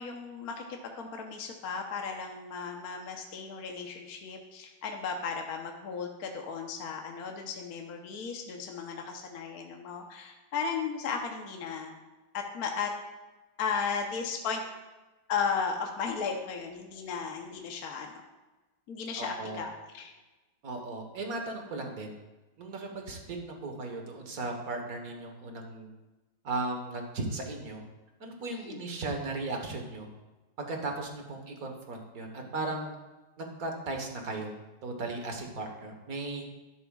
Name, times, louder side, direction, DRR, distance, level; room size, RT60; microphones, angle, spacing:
voice 1, 0.0-11.9 12.3-12.9 13.6-14.6 15.3-18.2 18.9-20.1 28.5-28.8, left 5 dB, 55° left, 2 dB, 1.2 m, -35 dB
voice 2, 19.2-19.6 20.6-22.1 22.6-25.9 26.4-27.8 28.2-30.1 30.6-32.9 33.4-34.5 34.8-36.4, right 2 dB, 50° right, 3 dB, 1.6 m, -36 dB
12.0 x 11.0 x 2.4 m, 1.1 s
omnidirectional pair, 2.2 m